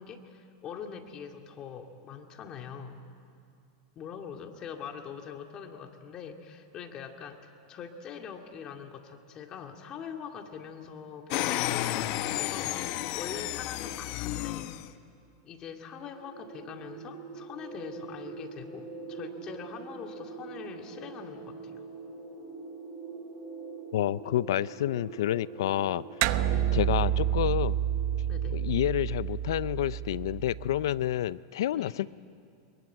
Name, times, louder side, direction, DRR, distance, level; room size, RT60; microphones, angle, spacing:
voice 1, 0.0-3.0 4.0-14.7 15.4-21.8 26.3-26.7 28.3-28.7 31.7-31.9, left 7 dB, 30° left, 4 dB, 2.2 m, -43 dB
sound 1, 11.3-14.9, left 14 dB, 50° left, 0.9 m, -32 dB
sound 2, 16.0-30.3, right 4 dB, 25° right, 4.7 m, -45 dB
voice 2, 23.9-26.1 26.7-27.8 28.5-32.1, left 12 dB, 80° left, 18 dB, 0.5 m, -29 dB
sound 3, 26.2-31.0, right 11 dB, 55° right, 0.9 m, -29 dB
23.5 x 22.5 x 9.1 m, 2.5 s
supercardioid pair, 140°, 2 cm